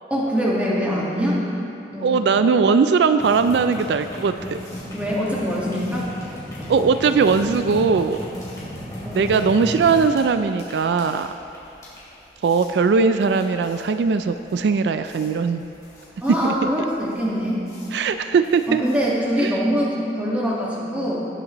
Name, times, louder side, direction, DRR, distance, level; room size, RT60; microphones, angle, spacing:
voice 1, 0.1-1.4 1.9-2.2 4.9-6.1 9.0-9.4 16.2-17.7 18.7-21.2, equal, 10° right, -6 dB, 1.6 m, -23 dB
voice 2, 2.0-4.6 6.7-8.3 9.1-11.3 12.4-15.6 16.4-16.5 17.9-18.8 19.4-19.6, right 5 dB, 75° right, 10 dB, 0.3 m, -19 dB
sound 1, 3.2-19.5, equal, 20° left, 2.8 m, -36 dB
17.5 x 7.9 x 3.0 m, 2.7 s
head